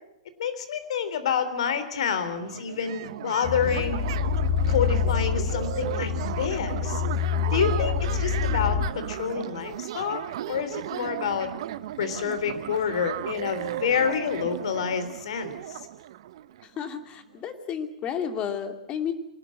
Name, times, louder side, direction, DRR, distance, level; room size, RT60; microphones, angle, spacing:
voice 1, 0.4-4.0 4.7-7.0 7.5-10.2 10.5-11.5 12.0-15.8, left 7 dB, 60° left, 11 dB, 3.6 m, -28 dB
sound 1, 2.3-16.9, right 12 dB, 55° right, 1.0 m, -35 dB
sound 2, 3.4-8.9, left 7 dB, 45° left, 3.5 m, -26 dB
voice 2, 16.6-19.1, left 8 dB, 30° left, 7 dB, 2.7 m, -32 dB
24.5 x 19.0 x 7.7 m, 0.84 s
figure-of-eight pair, 110°, 4 cm